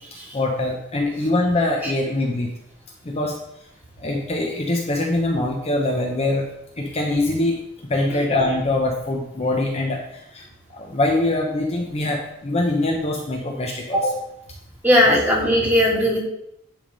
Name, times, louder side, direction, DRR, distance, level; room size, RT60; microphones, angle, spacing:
voice 1, 0.3-2.5 3.0-3.4 4.0-6.5 6.8-7.6 7.9-10.4 10.7-14.2, left 2 dB, 30° left, 0 dB, 0.8 m, -23 dB
voice 2, 14.8-16.2, equal, 10° right, -4 dB, 2.1 m, -18 dB
10.0 x 3.6 x 5.3 m, 0.80 s
head